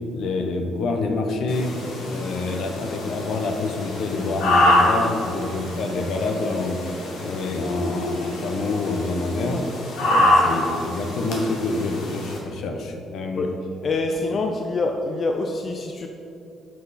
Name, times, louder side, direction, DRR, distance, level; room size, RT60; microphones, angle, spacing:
voice 1, 0.1-1.7 2.1-6.8 7.2-9.6 10.2-13.5, left 3 dB, 75° left, 4 dB, 0.8 m, -27 dB
sound 1, 1.5-12.4, left 1 dB, 90° left, 1.5 m, -25 dB
voice 2, 13.8-16.1, left 3 dB, 50° left, 3 dB, 0.5 m, -25 dB
7.7 x 5.8 x 4.2 m, 2.7 s
cardioid pair, 90°, 0 cm